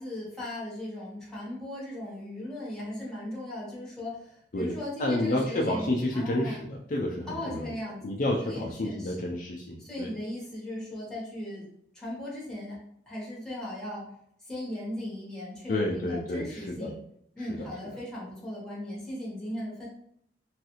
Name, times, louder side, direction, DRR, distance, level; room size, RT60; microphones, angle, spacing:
voice 1, 0.0-6.7 7.3-9.3 9.8-11.7 11.9-12.8 13.1-14.1 14.4-17.0 17.4-19.9, left 1 dB, 5° left, -6 dB, 1.0 m, -37 dB
voice 2, 5.0-7.6 8.0-10.1 15.7-16.9 17.6-17.7, left 1 dB, 50° left, -1 dB, 0.4 m, -30 dB
3.1 x 2.4 x 2.9 m, 0.71 s
head